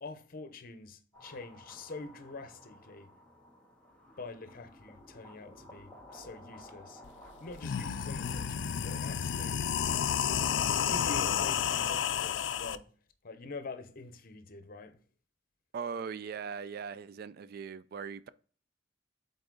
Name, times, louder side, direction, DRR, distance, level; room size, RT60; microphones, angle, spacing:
voice 1, 0.0-3.1 4.2-7.0 7.4-8.6 8.8-9.7 10.2-10.5 10.9-12.9 13.2-15.0, left 3 dB, 50° left, 0.7 m, -45 dB
sound 1, 1.1-10.0, left 1 dB, 5° left, 2.3 m, -55 dB
sound 2, 7.0-7.1 7.5-12.8, left 8 dB, 70° left, 0.4 m, -31 dB
voice 2, 15.7-18.3, right 6 dB, 50° right, 0.3 m, -39 dB
7.9 x 4.1 x 3.8 m
head